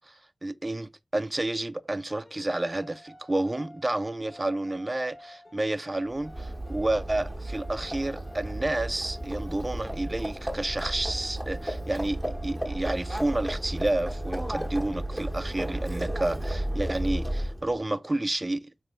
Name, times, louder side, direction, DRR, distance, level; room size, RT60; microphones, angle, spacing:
voice 1, 0.1-18.9, right 2 dB, 25° right, 0.3 m, -30 dB
sound 1, 2.2-15.1, left 1 dB, 55° left, 1.5 m, -51 dB
Livestock farm animals working animals, 6.1-17.7, right 1 dB, ahead, 1.0 m, -33 dB
3.6 x 2.8 x 3.5 m
wide cardioid pair, 65°, 0 cm